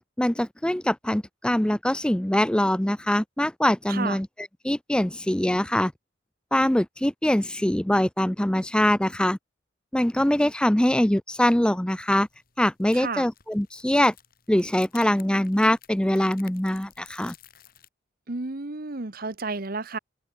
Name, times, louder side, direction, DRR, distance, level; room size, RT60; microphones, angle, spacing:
voice 1, 0.2-5.9 6.5-9.4 9.9-12.3 12.6-14.1 14.5-17.3, left 1 dB, 5° left, 0.5 m, -23 dB
sound 1, 12.2-17.9, left 10 dB, 50° left, 5.4 m, -53 dB
voice 2, 12.9-13.2 18.3-20.0, right 3 dB, 50° right, 1.2 m, -31 dB
open air
head